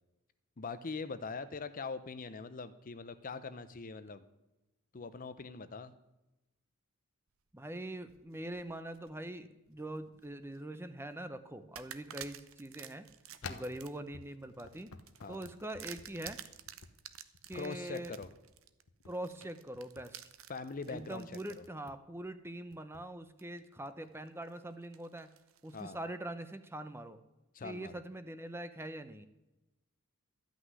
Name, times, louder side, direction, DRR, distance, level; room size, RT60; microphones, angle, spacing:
voice 1, 0.6-4.2 4.9-5.9 13.4-13.6 15.2-15.4 17.5-18.3 20.5-21.6 25.7-26.0 27.5-27.9, left 4 dB, 40° left, 12 dB, 0.6 m, -42 dB
voice 2, 7.5-13.1 13.5-14.9 15.3-16.4 17.5-18.2 19.1-20.2 20.9-25.3 25.6-27.2 27.6-29.3, right 1 dB, 10° right, 10 dB, 0.7 m, -43 dB
sound 1, 7.9-9.1 9.7-10.6 11.1-11.2 11.7-21.7 22.3-22.4 23.4-23.9 24.3-25.9, right 10 dB, 65° right, 0.8 m, -52 dB
sound 2, 13.4-16.9 17.3-17.6 18.0-18.3 18.9-19.1 19.8-20.1 20.7-21.0 21.6-22.0 22.7-23.0, left 4 dB, 80° left, 1.0 m, -50 dB
13.5 x 6.2 x 9.5 m, 0.98 s
head